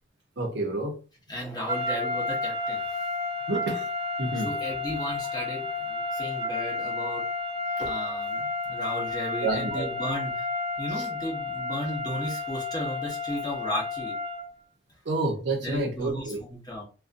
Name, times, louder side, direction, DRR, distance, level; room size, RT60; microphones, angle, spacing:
voice 1, 0.4-0.9 3.5-3.8 4.2-4.5 9.4-9.8 15.1-16.4, right 2 dB, 60° right, 0.6 m, -28 dB
voice 2, 1.3-3.0 4.3-7.2 7.8-10.5 10.8-14.1 15.6-16.8, equal, 20° left, 0.8 m, -35 dB
sound 1, 1.7-14.5, left 3 dB, 35° right, 0.8 m, -31 dB
2.4 x 2.2 x 2.5 m
head